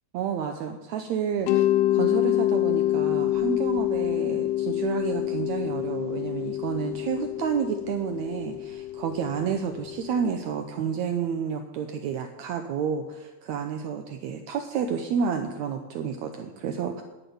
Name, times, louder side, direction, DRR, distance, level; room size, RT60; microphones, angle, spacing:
voice 1, 0.1-1.6 1.9-17.0, right 7 dB, 80° right, 5 dB, 1.6 m, -30 dB
Mallet percussion, 1.5-10.2, left 14 dB, 80° left, 1.7 m, -27 dB
10.0 x 7.9 x 9.4 m, 1.1 s
omnidirectional pair, 4.3 m